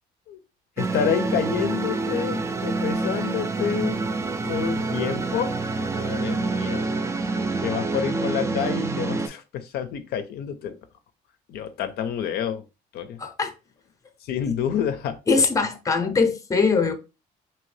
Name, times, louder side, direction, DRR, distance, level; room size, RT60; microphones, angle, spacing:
voice 1, 0.8-4.0 4.5-6.9 7.6-10.8 11.5-12.6 12.9-13.2 14.2-15.2, left 8 dB, 70° left, 0.5 m, -28 dB
sound 1, 0.8-9.3, right 3 dB, 15° right, 0.3 m, -27 dB
voice 2, 13.2-13.5 15.3-16.9, left 4 dB, 20° left, 0.6 m, -22 dB
2.8 x 2.6 x 3.2 m
cardioid pair, 110°, 17 cm